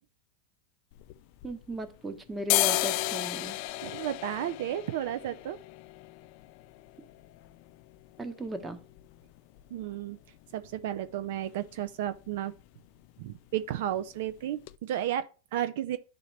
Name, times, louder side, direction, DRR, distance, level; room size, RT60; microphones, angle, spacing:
sound 1, 0.9-2.0 2.3-10.0 10.3-10.4 10.7-11.3 11.6-11.8 12.1-12.3 12.6-13.3 13.6-13.8 14.3-14.4 14.7-14.8, left 19 dB, 55° left, 0.3 m, -34 dB
voice 1, 1.4-3.6 8.2-8.8, right 1 dB, 15° right, 1.0 m, -36 dB
voice 2, 3.8-5.6 9.7-10.2 10.5-12.5 13.2-16.0, right 11 dB, 70° right, 0.4 m, -33 dB
11.0 x 3.8 x 3.2 m
supercardioid pair, 130°, 0 cm